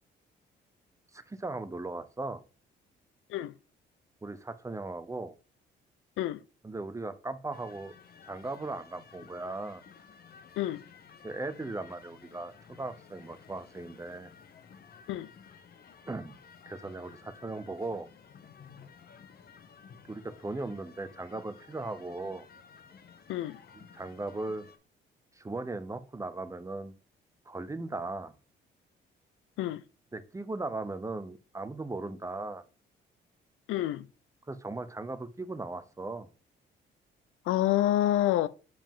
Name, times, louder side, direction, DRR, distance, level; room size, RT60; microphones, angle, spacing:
voice 1, 1.1-2.4 4.2-5.3 6.6-7.9 8.3-9.8 11.2-14.3 16.1-16.4 16.7-18.1 20.1-22.5 23.7-24.6 25.4-26.9 27.5-28.3 30.1-32.6 34.5-36.3, right 2 dB, 15° right, 0.7 m, -38 dB
sound 1, 7.5-24.8, left 6 dB, 50° left, 0.9 m, -54 dB
voice 2, 33.7-34.1 37.5-38.5, left 13 dB, 85° left, 0.5 m, -28 dB
7.4 x 5.0 x 3.6 m
cardioid pair, 90°, 20 cm